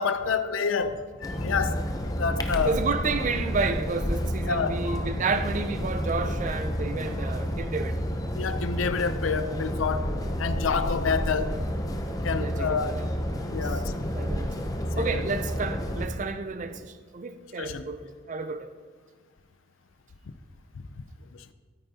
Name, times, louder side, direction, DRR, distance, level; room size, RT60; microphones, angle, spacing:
voice 1, 0.0-2.8 4.5-5.2 8.3-11.6 12.2-12.9 13.5-14.0 15.0-15.2 17.6-17.9 21.3-21.5, left 5 dB, 85° left, 0.5 m, -29 dB
sound 1, 1.2-16.1, equal, 20° left, 0.6 m, -30 dB
voice 2, 2.6-8.0 12.4-13.0 13.5-13.8 14.1-14.6 15.0-18.7, right 4 dB, 40° right, 0.5 m, -31 dB
13.5 x 8.8 x 2.8 m
head